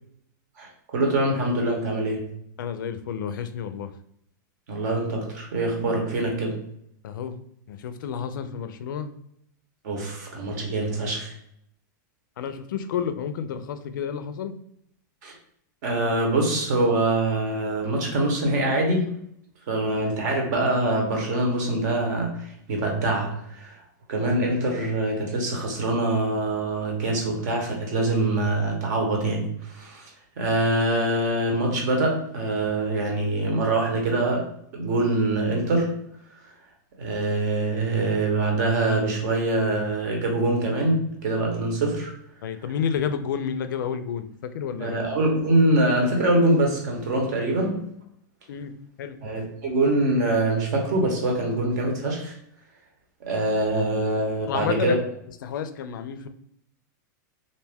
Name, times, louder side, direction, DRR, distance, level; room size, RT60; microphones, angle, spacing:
voice 1, 0.6-2.3 4.7-6.6 9.8-11.3 15.2-15.4 15.8-19.1 19.7-23.8 24.1-30.1 30.4-35.9 37.0-42.1 44.8-47.9 49.2-52.4 53.2-55.0, right 2 dB, 60° right, 1 dB, 0.9 m, -24 dB
voice 2, 2.6-3.9 7.0-7.4 7.7-9.1 12.4-14.5 42.4-45.0 48.5-48.7 49.0-49.2 54.5-55.0 55.4-56.3, left 7 dB, 80° left, 10 dB, 0.4 m, -30 dB
2.5 x 2.2 x 3.4 m, 0.71 s
supercardioid pair, 150°, 11 cm